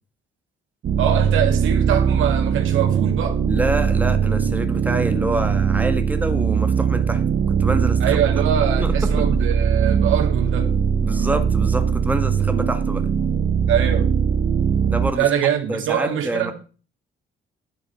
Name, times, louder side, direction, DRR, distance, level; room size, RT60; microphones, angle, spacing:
sound 1, 0.8-15.1, right 7 dB, 55° right, 1.3 m, -20 dB
voice 1, 1.0-3.4 8.0-10.8 13.7-14.1 15.1-16.5, right 9 dB, 80° right, 2.1 m, -23 dB
voice 2, 3.5-8.2 8.8-9.1 11.0-13.1 14.9-15.3 15.7-16.5, right 2 dB, 10° right, 1.6 m, -26 dB
11.0 x 6.9 x 5.7 m
cardioid pair, 90°, 20 cm